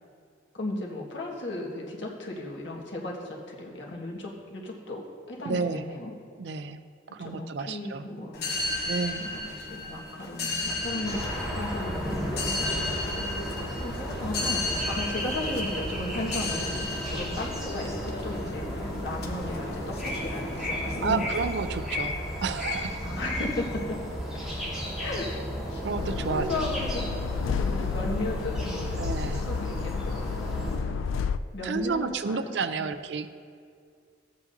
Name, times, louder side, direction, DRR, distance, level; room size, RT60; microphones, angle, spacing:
voice 1, 0.5-6.1 7.2-8.5 9.2-11.2 11.5-13.0 13.8-21.3 23.0-24.0 25.0-25.9 26.3-27.2 27.5-29.0 29.3-31.2 31.5-32.9, left 1 dB, 70° left, -2 dB, 1.6 m, -35 dB
voice 2, 5.4-5.8 6.4-6.8 7.1-8.1 8.9-9.2 21.0-23.0 25.8-26.7 29.0-29.4 31.6-33.3, right 4 dB, 60° right, 12 dB, 0.4 m, -31 dB
sound 1, 8.3-21.8, left 2 dB, 55° left, 0.9 m, -34 dB
sound 2, 11.0-30.8, equal, 5° right, 2.0 m, -34 dB
sound 3, 26.0-31.4, left 5 dB, 85° left, 0.3 m, -31 dB
14.5 x 8.3 x 2.7 m, 2.2 s
head